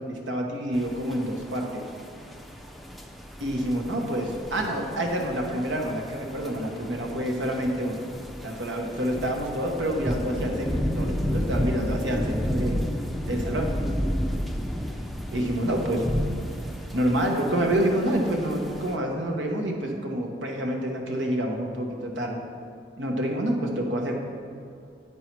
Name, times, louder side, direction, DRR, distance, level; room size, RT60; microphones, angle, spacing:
voice 1, 0.1-1.8 3.4-8.0 8.4-12.8 13.3-13.7 15.3-16.0 16.9-22.4 23.0-24.1, right 1 dB, 85° right, 1 dB, 1.2 m, -27 dB
sound 1, 0.7-19.0, equal, ahead, 0.4 m, -32 dB
8.7 x 5.5 x 4.6 m, 2.4 s
head